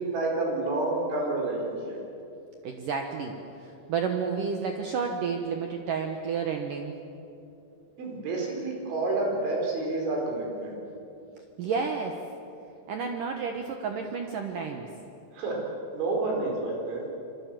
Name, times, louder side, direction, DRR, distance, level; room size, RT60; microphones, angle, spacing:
voice 1, 0.0-2.0 8.0-10.7 15.3-15.6 15.9-17.1, right 2 dB, 80° right, -1 dB, 7.0 m, -29 dB
voice 2, 2.6-3.3 3.6-6.9 11.6-12.2 12.9-14.9, right 5 dB, 65° right, 3 dB, 2.2 m, -31 dB
26.0 x 24.0 x 7.6 m, 2.8 s
omnidirectional pair, 5.3 m